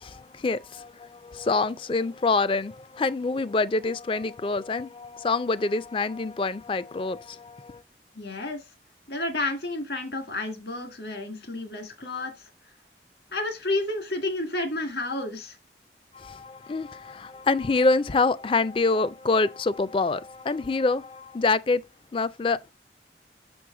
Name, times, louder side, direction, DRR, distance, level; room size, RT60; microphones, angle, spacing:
voice 1, 0.0-7.8 16.1-21.8 22.1-22.7, left 3 dB, 30° left, 0.3 m, -26 dB
voice 2, 8.2-8.6 9.1-12.5 13.3-15.6, left 2 dB, 75° left, 1.9 m, -31 dB
6.3 x 6.2 x 3.7 m
head